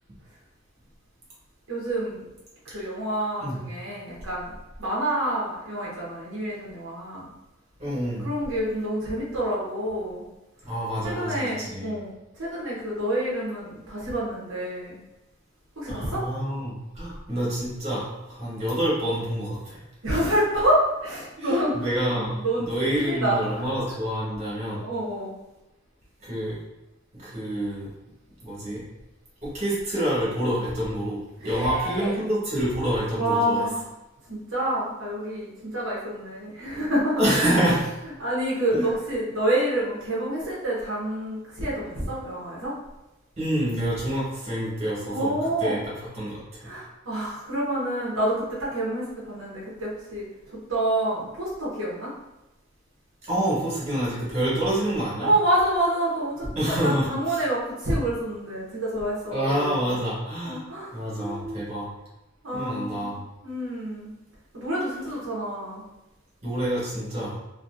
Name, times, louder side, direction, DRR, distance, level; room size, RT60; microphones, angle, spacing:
voice 1, 1.7-2.3 2.6-4.5 4.8-7.3 8.2-10.3 11.0-15.0 15.8-16.3 20.0-21.7 22.1-22.7 22.9-23.6 24.7-25.3 31.4-32.2 33.1-33.9 34.3-37.5 38.2-42.7 45.1-45.8 46.6-50.2 50.7-52.1 55.2-60.0 60.4-61.7 62.4-63.1 63.4-64.1 64.5-65.8, right 1 dB, 75° right, -7 dB, 0.8 m, -28 dB
voice 2, 7.8-8.3 10.6-11.9 15.9-19.8 21.4-24.8 26.2-26.6 27.1-27.9 28.4-28.8 29.4-31.2 31.4-33.6 37.2-37.8 38.7-38.9 43.4-45.3 45.6-46.7 53.2-55.3 56.5-57.4 59.3-60.6 60.9-61.9 62.5-63.2 66.4-67.4, right 1 dB, 35° right, -8 dB, 1.2 m, -27 dB
2.6 x 2.6 x 2.5 m, 0.98 s
head